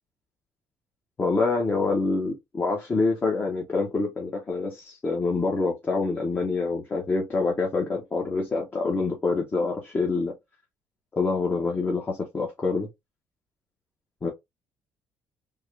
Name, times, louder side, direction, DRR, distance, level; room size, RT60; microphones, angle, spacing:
voice 1, 1.2-10.3 11.2-12.9 14.2-14.3, left 3 dB, 30° left, 1.0 m, -26 dB
3.6 x 2.3 x 3.2 m
cardioid pair, 110°, 7 cm